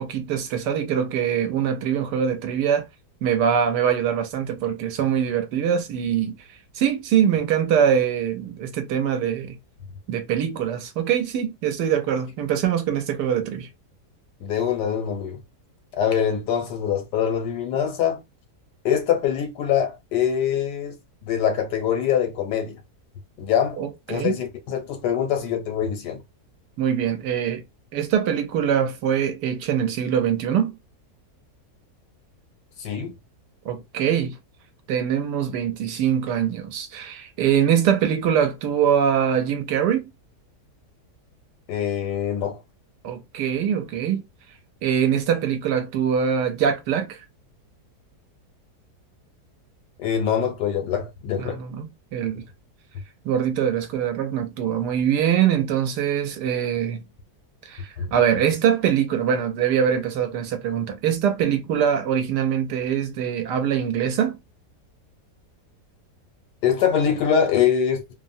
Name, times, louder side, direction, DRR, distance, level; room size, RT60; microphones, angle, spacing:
voice 1, 0.0-2.9 3.2-6.4 6.7-9.6 10.1-13.7 23.8-24.4 26.8-27.6 27.9-30.8 33.6-34.4 34.9-40.1 43.0-44.2 44.8-47.2 51.4-51.9 52.1-52.5 53.2-57.0 57.6-64.4, right 8 dB, 90° right, 1.3 m, -23 dB
voice 2, 14.4-15.4 15.9-18.2 18.8-21.0 21.2-22.8 23.4-23.8 24.1-26.2 32.8-33.1 41.7-42.6 50.0-51.6 58.0-58.1 66.6-68.1, left 8 dB, 85° left, 1.5 m, -24 dB
3.3 x 2.1 x 2.6 m
omnidirectional pair, 1.7 m